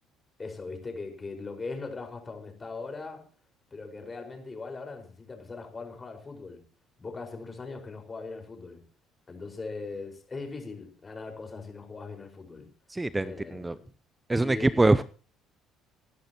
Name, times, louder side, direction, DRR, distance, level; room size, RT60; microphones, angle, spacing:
voice 1, 0.4-3.2 3.7-6.6 7.0-8.8 9.3-12.7 13.2-13.9 14.4-14.8, left 3 dB, 25° left, 3 dB, 5.1 m, -40 dB
voice 2, 12.9-13.7 14.3-15.0, right 2 dB, 15° right, 17 dB, 0.6 m, -24 dB
25.5 x 11.5 x 3.0 m, 0.39 s
hypercardioid pair, 55°, 0 cm